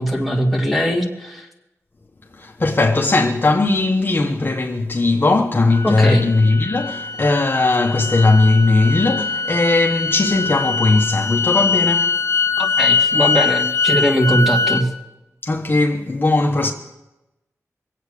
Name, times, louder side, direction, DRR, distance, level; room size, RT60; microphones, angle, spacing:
voice 1, 0.0-1.5 5.8-6.3 12.6-14.9, equal, ahead, 2.5 m, -20 dB
voice 2, 2.3-12.2 15.4-16.7, left 3 dB, 40° left, 1.1 m, -18 dB
sound 1, 5.7-14.8, left 4 dB, 55° left, 1.5 m, -22 dB
23.5 x 8.4 x 6.7 m
wide cardioid pair, 110°, 6 cm